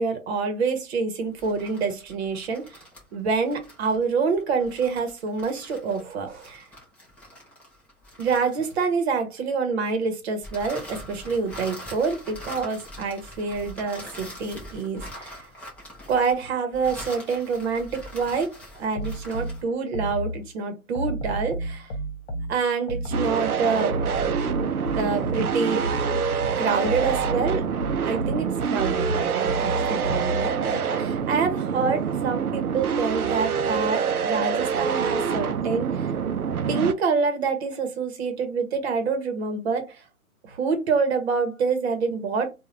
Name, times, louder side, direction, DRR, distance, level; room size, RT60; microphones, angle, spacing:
voice 1, 0.0-2.8 3.1-6.7 8.2-15.5 16.1-21.9 22.5-24.0 24.9-25.9 26.6-27.7 28.0-36.1 36.7-40.0 40.4-42.5, right 4 dB, 45° right, 1.1 m, -27 dB
sound 1, 1.3-9.1 10.4-19.7, left 1 dB, 5° left, 0.6 m, -43 dB
sound 2, 18.9-20.5 20.9-23.4 23.9-26.4 26.8-30.6, right 1 dB, 50° left, 0.9 m, -32 dB
sound 3, 23.1-36.9, right 7 dB, 90° right, 0.6 m, -26 dB
3.7 x 2.4 x 3.2 m
figure-of-eight pair, 120°, 43 cm